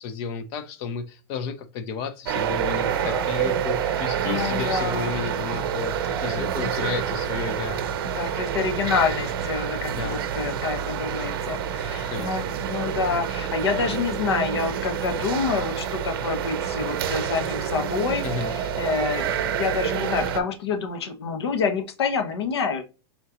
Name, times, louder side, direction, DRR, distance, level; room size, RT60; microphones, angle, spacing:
voice 1, 0.0-6.0 6.2-7.8 9.9-10.2 12.1-12.4 18.2-18.5, left 6 dB, 35° left, 0.7 m, -32 dB
sound 1, 2.3-20.4, right 8 dB, 60° right, 0.7 m, -28 dB
voice 2, 2.8-3.3 3.9-4.0 4.2-5.3 6.0-6.2 8.0-22.8, left 5 dB, 85° left, 1.3 m, -28 dB
4.4 x 3.7 x 3.0 m
supercardioid pair, 165°, 13 cm